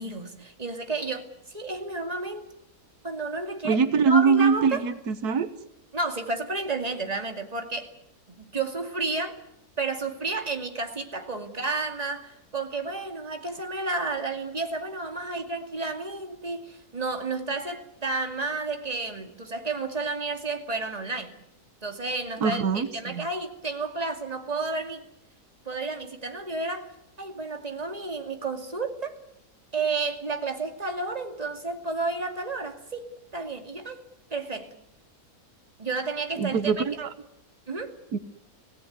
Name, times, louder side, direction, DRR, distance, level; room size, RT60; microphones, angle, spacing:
voice 1, 0.0-2.5 3.0-4.8 5.9-7.9 8.3-9.4 9.8-21.3 21.8-25.0 25.7-26.9 27.2-29.2 29.7-34.0 34.3-34.7 35.8-36.8 37.7-38.0, right 3 dB, 25° right, 5 dB, 2.5 m, -31 dB
voice 2, 3.6-5.5 22.4-23.3 36.4-37.1 38.1-38.2, right 5 dB, 90° right, 11 dB, 1.8 m, -23 dB
26.0 x 17.5 x 9.5 m, 0.79 s
omnidirectional pair, 1.6 m